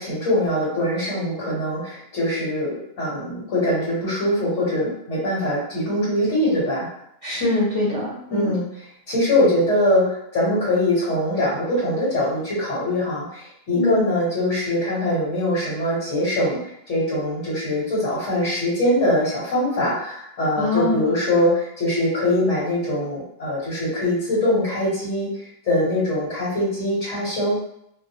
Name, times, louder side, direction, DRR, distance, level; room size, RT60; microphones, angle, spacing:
voice 1, 0.0-2.7 3.0-6.9 8.3-8.6 9.1-16.6 16.9-25.3 25.6-27.6, left 1 dB, 70° left, -7 dB, 1.5 m, -22 dB
voice 2, 7.2-8.5 13.8-14.0 20.6-21.0, left 2 dB, 30° left, -9 dB, 1.0 m, -23 dB
2.6 x 2.3 x 2.7 m, 0.76 s
omnidirectional pair, 1.3 m